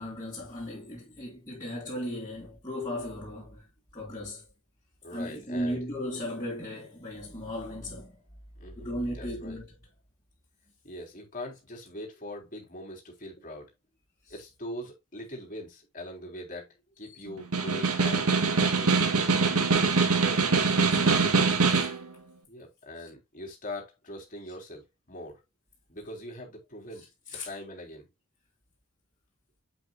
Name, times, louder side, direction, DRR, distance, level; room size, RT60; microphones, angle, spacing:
voice 1, 0.0-3.7 3.9-4.5 5.1-8.2 8.7-9.7 14.2-14.3 20.8-21.5 23.0-23.1 27.3-27.5, equal, 15° left, 4.6 m, -36 dB
voice 2, 5.0-5.8 8.6-8.9 9.1-9.6 10.8-13.7 14.3-18.3 18.6-19.7 22.5-25.4 25.9-27.1 27.4-28.1, left 1 dB, 35° left, 3.6 m, -42 dB
Snare drum, 17.4-22.0, right 4 dB, 85° right, 1.7 m, -23 dB
8.3 x 8.0 x 2.3 m
head